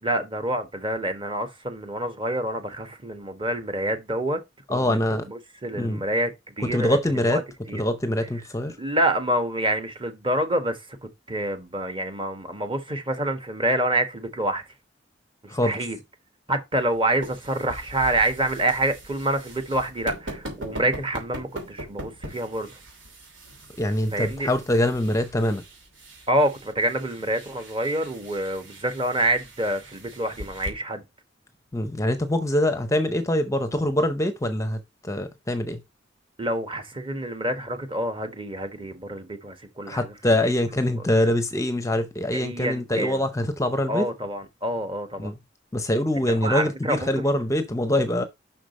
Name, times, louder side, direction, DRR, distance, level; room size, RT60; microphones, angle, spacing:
voice 1, 0.0-4.4 4.7-7.0 7.3-7.4 7.7-7.8 8.8-10.9 11.3-14.6 15.4-16.0 16.5-22.7 24.1-24.5 26.3-31.0 36.4-40.1 40.4-40.5 40.8-41.0 42.3-43.2 43.9-45.3 46.2-47.2, right 1 dB, 30° right, 1.3 m, -27 dB
voice 2, 4.7-5.3 5.8-6.0 6.7-7.4 7.7-8.8 15.5-15.8 23.8-25.6 31.7-35.8 39.9-44.1 45.2-45.4 45.7-48.2, left 1 dB, 15° left, 0.6 m, -24 dB
sound 1, 16.8-30.7, equal, 85° right, 2.9 m, -41 dB
5.8 x 5.0 x 5.3 m
head